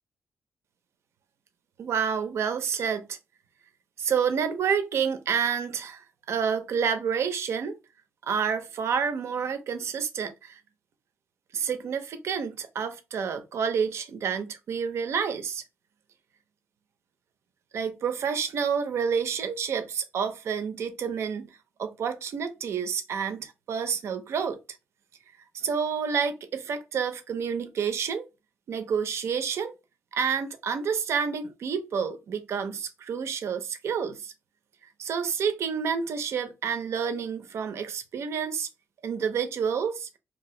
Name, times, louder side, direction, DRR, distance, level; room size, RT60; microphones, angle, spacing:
voice 1, 1.8-3.2 4.0-7.8 8.3-10.6 11.5-15.6 17.7-21.5 21.8-24.6 25.5-28.3 28.7-29.7 30.1-34.3 35.0-38.7 39.0-40.1, right 6 dB, 70° right, 0.5 m, -29 dB
2.7 x 2.4 x 3.0 m
cardioid pair, 105°, 5 cm